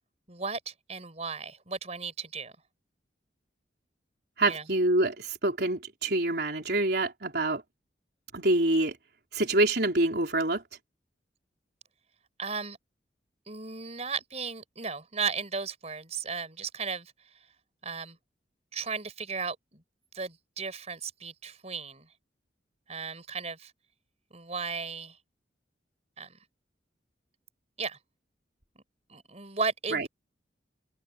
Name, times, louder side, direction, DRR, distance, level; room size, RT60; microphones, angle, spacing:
voice 1, 0.3-2.6 4.5-4.6 12.4-12.8 13.5-17.1 17.8-18.2 18.7-19.8 20.1-22.1 22.9-23.7 24.3-25.2 26.2-26.4 27.8-28.0 28.7-28.8 29.1-30.1, right 5 dB, 35° right, 5.0 m, -35 dB
voice 2, 4.4-7.6 8.3-9.0 9.3-10.6 29.9-30.1, right 2 dB, 60° right, 4.3 m, -26 dB
open air
head